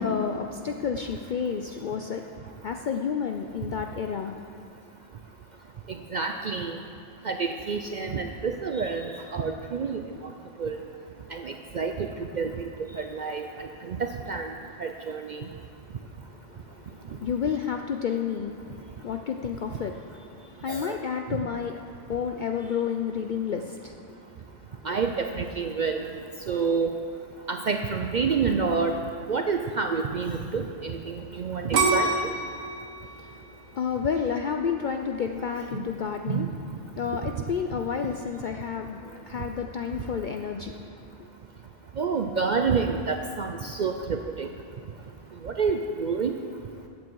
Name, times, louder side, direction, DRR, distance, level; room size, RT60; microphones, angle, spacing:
voice 1, 0.0-2.3 2.6-4.4 16.5-24.1 33.0-36.5 37.0-41.3, left 7 dB, 65° left, 4 dB, 0.5 m, -31 dB
voice 2, 5.9-6.8 7.2-10.0 10.6-10.8 11.3-14.0 14.3-14.5 14.8-15.5 20.7-21.0 24.8-26.0 26.5-26.9 27.5-29.0 29.3-32.3 35.7-35.8 36.3-36.5 38.0-38.1 42.0-44.5 45.4-46.4, right 5 dB, 60° right, 4 dB, 0.5 m, -28 dB
sound 1, 31.7-34.6 35.2-35.6, right 3 dB, 85° right, 1.6 m, -27 dB
14.0 x 8.4 x 4.6 m, 2.4 s
omnidirectional pair, 1.3 m